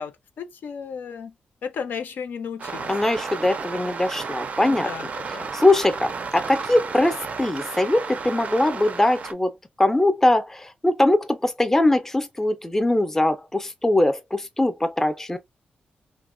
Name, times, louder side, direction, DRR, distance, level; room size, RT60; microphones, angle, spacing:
voice 1, 0.0-1.3 1.6-2.9 4.7-5.5, left 6 dB, 75° left, 0.4 m, -34 dB
sound 1, 2.6-9.3, right 5 dB, 50° right, 0.4 m, -33 dB
voice 2, 2.9-4.9 5.3-9.5 9.8-15.4, left 1 dB, 10° left, 0.4 m, -21 dB
2.9 x 2.1 x 2.4 m
wide cardioid pair, 120°, 3 cm